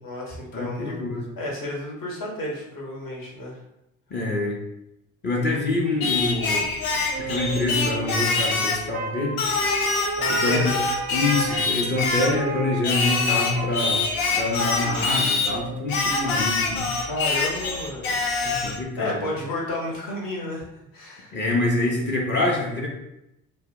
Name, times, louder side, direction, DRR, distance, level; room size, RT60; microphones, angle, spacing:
voice 1, 0.0-1.0 1.4-3.6 10.2-10.9 17.1-18.2 19.0-20.7 20.9-21.3, left 1 dB, 50° left, -3 dB, 1.2 m, -31 dB
voice 2, 0.5-1.3 4.1-4.6 5.2-6.7 7.2-9.4 10.3-10.8 11.1-14.0 14.4-16.9 18.4-19.3 21.3-22.9, left 2 dB, 25° left, -3 dB, 0.8 m, -26 dB
Singing, 6.0-8.9 9.4-12.4 12.8-15.5 15.9-18.8, left 3 dB, 75° left, 0.6 m, -25 dB
Wind instrument woodwind instrument, 7.1-16.1, right 3 dB, 20° right, 0.4 m, -34 dB
2.7 x 2.0 x 3.5 m, 0.85 s
hypercardioid pair, 55°, 44 cm